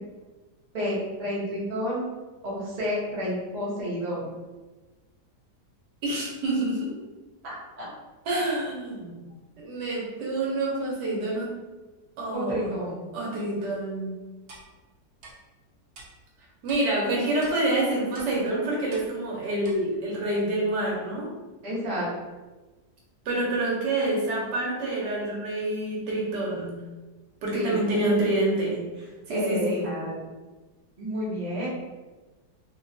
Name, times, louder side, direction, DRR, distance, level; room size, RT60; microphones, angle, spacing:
voice 1, 0.7-2.0 2.4-4.3 7.4-7.9 12.3-13.0 21.6-22.1 27.5-28.4 29.3-30.2 31.0-31.7, equal, 30° right, -6 dB, 0.7 m, -30 dB
voice 2, 6.0-6.9 8.3-9.2 9.6-11.5 12.2-12.7 13.1-14.1 16.6-21.3 23.2-26.8 27.4-30.0, right 2 dB, 80° right, -3 dB, 1.5 m, -27 dB
Clock, 14.5-14.6 15.2-15.3 15.9-16.1 16.7-16.8 17.4-17.5 18.1-18.3 18.9-19.1 19.6-19.7, right 2 dB, 65° right, 1.2 m, -44 dB
3.1 x 2.9 x 2.6 m, 1.2 s
omnidirectional pair, 1.8 m